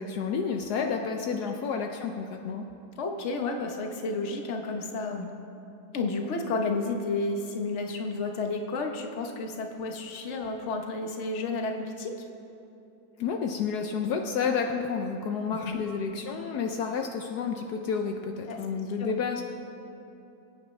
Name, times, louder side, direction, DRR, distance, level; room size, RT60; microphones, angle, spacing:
voice 1, 0.0-2.6 13.2-19.4, left 6 dB, 75° left, 4 dB, 1.2 m, -30 dB
voice 2, 3.0-5.3 5.9-12.1 15.5-15.8 18.5-18.6 19.0-19.1, left 3 dB, 50° left, 3 dB, 1.2 m, -31 dB
23.0 x 9.6 x 3.2 m, 2.8 s
omnidirectional pair, 1.8 m